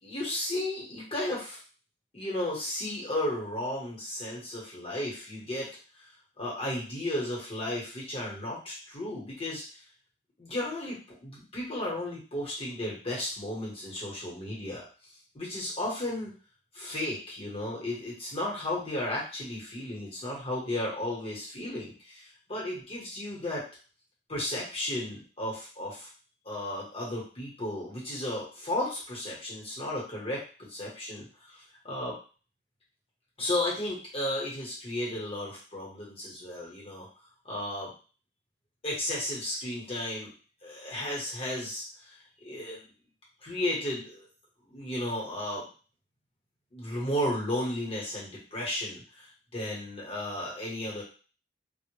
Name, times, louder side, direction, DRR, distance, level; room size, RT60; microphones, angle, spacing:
voice 1, 0.0-1.6 2.1-5.7 6.0-6.1 6.4-9.8 10.4-14.8 15.3-16.3 16.7-23.6 24.3-26.1 26.4-32.2 33.4-37.1 37.4-37.9 38.8-40.3 40.6-42.9 43.4-44.3 44.7-45.7 46.7-51.0, left 1 dB, 30° left, -5 dB, 0.9 m, -34 dB
2.1 x 2.0 x 2.9 m, 0.37 s
head